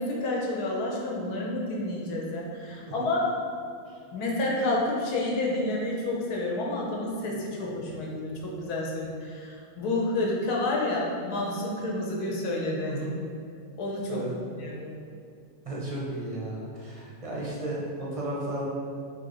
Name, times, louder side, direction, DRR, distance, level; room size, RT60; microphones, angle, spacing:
voice 1, 0.0-3.3 4.1-13.0 13.8-14.2 14.6-14.9, left 2 dB, 85° left, -3 dB, 1.3 m, -29 dB
voice 2, 12.8-13.2 14.1-14.4 15.6-18.7, right 1 dB, 35° right, -6 dB, 0.5 m, -34 dB
4.1 x 3.1 x 3.8 m, 2.4 s
omnidirectional pair, 1.6 m